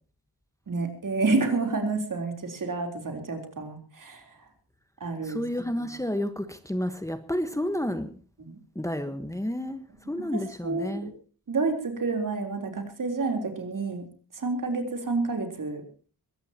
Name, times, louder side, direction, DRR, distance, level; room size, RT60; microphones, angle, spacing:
voice 1, 0.7-4.5 5.0-5.4 8.4-8.5 10.6-11.1 11.5-14.0 14.3-15.8, right 3 dB, 55° right, 4 dB, 3.7 m, -29 dB
voice 2, 5.2-8.2 8.7-9.8 10.1-11.1, left 1 dB, 10° left, 9 dB, 1.3 m, -30 dB
22.0 x 17.5 x 2.9 m, 0.39 s
wide cardioid pair, 75°, 37 cm